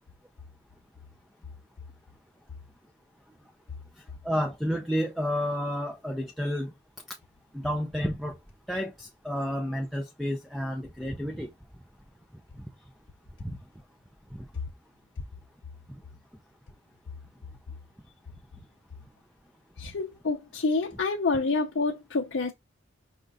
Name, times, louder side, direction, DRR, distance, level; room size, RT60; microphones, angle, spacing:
voice 1, 4.2-6.7 7.5-8.4 8.7-11.5 13.4-13.6 14.3-14.4, equal, ahead, 0.3 m, -30 dB
voice 2, 19.8-22.5, left 3 dB, 65° left, 0.5 m, -28 dB
5.0 x 2.2 x 3.8 m
head